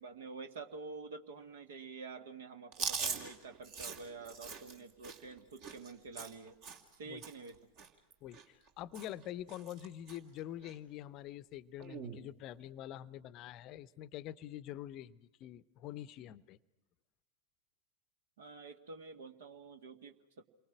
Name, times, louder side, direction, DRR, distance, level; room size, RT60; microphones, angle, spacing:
voice 1, 0.0-6.6 7.0-7.6 18.4-20.4, right 4 dB, 60° right, 8 dB, 2.0 m, -48 dB
Chewing mastication, 2.7-7.0 7.2-7.5 7.8-8.7 8.9-9.2 9.5-10.2 10.6-10.7 11.8-12.2, right 5 dB, 45° right, 2.8 m, -42 dB
voice 2, 8.2-16.6, left 12 dB, 35° left, 16 dB, 0.7 m, -46 dB
29.5 x 23.5 x 6.1 m, 0.99 s
figure-of-eight pair, 90°, 0 cm